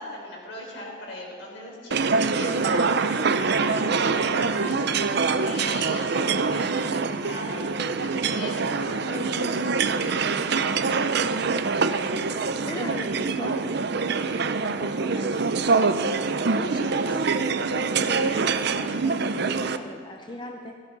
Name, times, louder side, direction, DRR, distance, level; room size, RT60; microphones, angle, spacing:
voice 1, 0.0-10.1, left 1 dB, 70° left, -1 dB, 3.8 m, -39 dB
sound 1, 1.9-19.8, right 4 dB, 60° right, 0.6 m, -25 dB
voice 2, 12.7-13.7 14.6-17.2 18.0-20.8, left 1 dB, 25° left, 3 dB, 0.6 m, -39 dB
17.0 x 15.5 x 4.0 m, 2.4 s
head